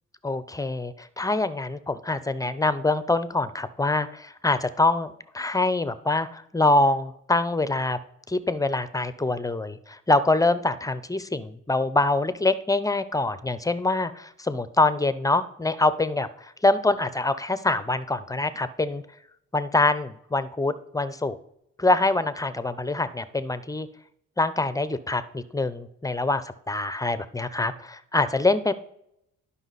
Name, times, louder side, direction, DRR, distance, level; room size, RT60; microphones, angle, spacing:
voice 1, 0.2-8.0 8.3-19.0 19.5-21.4 21.8-23.9 24.4-28.7, left 2 dB, 10° left, 14 dB, 0.6 m, -25 dB
11.0 x 5.7 x 4.1 m, 0.75 s
cardioid pair, 90°, 30 cm